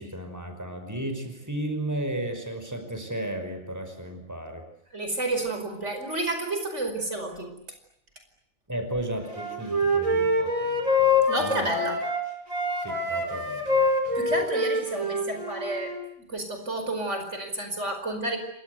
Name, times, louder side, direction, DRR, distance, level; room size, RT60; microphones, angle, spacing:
voice 1, 0.0-4.6 8.7-11.7 12.8-14.2, right 1 dB, 15° right, 6 dB, 5.4 m, -34 dB
voice 2, 4.9-7.5 11.3-12.0 14.2-15.9 16.3-18.4, right 2 dB, 60° right, 6 dB, 5.4 m, -30 dB
Wind instrument woodwind instrument, 9.3-12.2 12.5-16.0, left 2 dB, 85° right, 5.8 m, -25 dB
29.0 x 24.5 x 8.1 m, 0.74 s
omnidirectional pair, 1.4 m